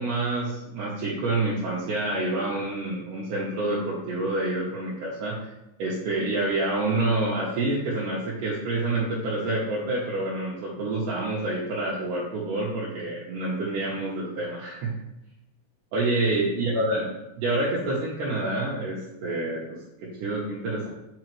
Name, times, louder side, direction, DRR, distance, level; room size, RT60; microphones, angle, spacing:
voice 1, 0.0-5.5 5.8-14.9 15.9-20.9, right 2 dB, 75° right, -5 dB, 2.3 m, -28 dB
6.3 x 4.8 x 3.1 m, 0.91 s
omnidirectional pair, 4.1 m